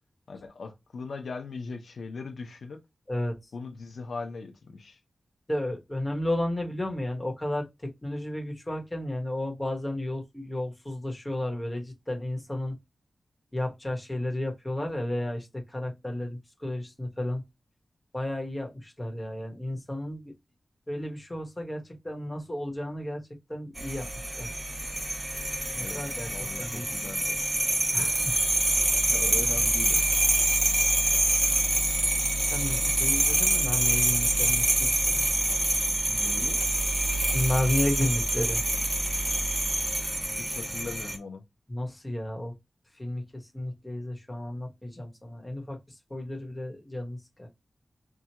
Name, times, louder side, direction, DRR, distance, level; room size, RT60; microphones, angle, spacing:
voice 1, 0.3-2.8 3.5-5.0 25.7-26.0 26.3-27.4 29.1-30.0 36.1-36.6 40.4-41.4, left 4 dB, 85° left, 0.7 m, -39 dB
voice 2, 5.5-12.8 13.5-17.4 18.1-20.3 20.9-23.2 23.5-24.5 25.7-27.2 27.9-28.5 32.5-35.2 37.3-38.6 41.7-42.5 42.9-47.5, left 1 dB, 15° left, 1.2 m, -33 dB
sound 1, 23.8-41.2, right 1 dB, 20° right, 0.8 m, -26 dB
4.6 x 2.3 x 2.9 m
wide cardioid pair, 90°, 0 cm